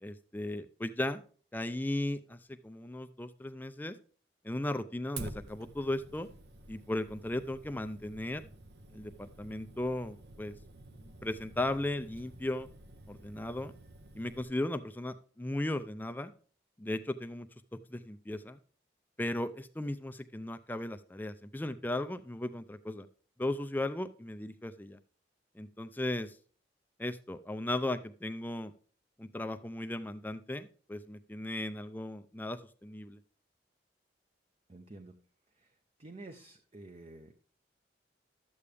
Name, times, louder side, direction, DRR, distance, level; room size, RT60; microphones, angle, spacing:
voice 1, 0.0-1.2 1.5-2.4 2.6-4.0 4.4-6.3 6.7-8.5 8.9-10.5 11.2-12.7 13.1-13.7 14.2-16.3 16.8-17.5 17.9-18.6 19.2-23.1 23.4-25.0 25.6-26.4 27.0-28.7 29.2-33.2, left 1 dB, 10° left, 9 dB, 0.4 m, -36 dB
Fire, 5.2-14.4, right 2 dB, 65° right, 0.9 m, -50 dB
voice 2, 34.7-35.2 36.0-37.4, right 2 dB, 35° right, 6 dB, 0.7 m, -49 dB
12.5 x 8.4 x 3.4 m, 0.42 s
head